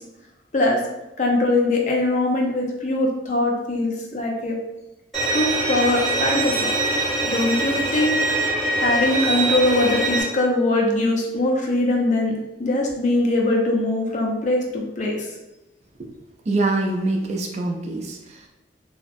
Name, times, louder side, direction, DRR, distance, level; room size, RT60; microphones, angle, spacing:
voice 1, 1.2-4.6 5.3-6.7 7.3-8.1 8.8-15.3, left 2 dB, 40° left, 0 dB, 0.4 m, -22 dB
Bowed string instrument, 5.1-10.2, right 2 dB, ahead, 0.8 m, -23 dB
voice 2, 16.5-18.5, right 2 dB, 35° right, 1 dB, 0.3 m, -24 dB
2.6 x 2.0 x 2.5 m, 0.95 s
head